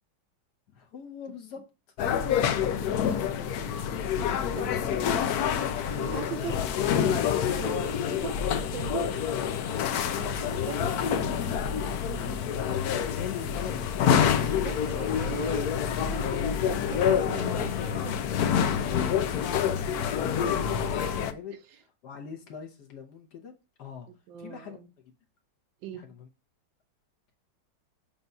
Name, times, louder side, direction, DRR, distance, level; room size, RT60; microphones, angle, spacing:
voice 1, 0.7-1.6 2.0-3.9 4.4-5.0 10.1-14.5 15.2-15.8 17.4-17.7 18.5-21.6 22.0-24.1 24.4-24.8 25.9-26.3, left 6 dB, 60° left, 1.4 m, -43 dB
sound 1, 2.0-21.3, left 8 dB, 80° left, 0.8 m, -27 dB
voice 2, 4.3-5.0 5.9-6.6 7.6-8.5 8.7-9.2 10.4-11.3 14.6-15.7 16.0-18.2 21.5-21.6 24.3-24.9 25.8-26.1, right 9 dB, 75° right, 1.3 m, -40 dB
7.0 x 2.5 x 5.4 m
omnidirectional pair, 2.2 m